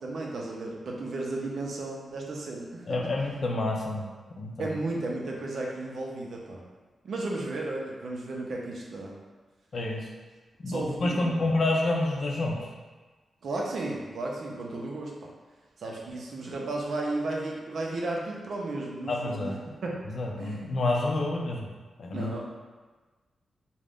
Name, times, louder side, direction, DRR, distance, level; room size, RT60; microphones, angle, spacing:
voice 1, 0.0-3.1 4.6-6.6 7.0-9.1 10.6-11.5 13.4-15.3 15.8-19.5 19.8-20.0 20.4-20.6 22.1-22.4, right 2 dB, 70° right, -1 dB, 0.5 m, -34 dB
voice 2, 2.9-4.1 4.4-4.7 9.7-10.0 10.6-12.6 19.1-19.6 20.1-21.7 22.0-22.3, left 2 dB, 60° left, 0 dB, 0.5 m, -28 dB
2.5 x 2.1 x 3.4 m, 1.3 s
cardioid pair, 95°, 0 cm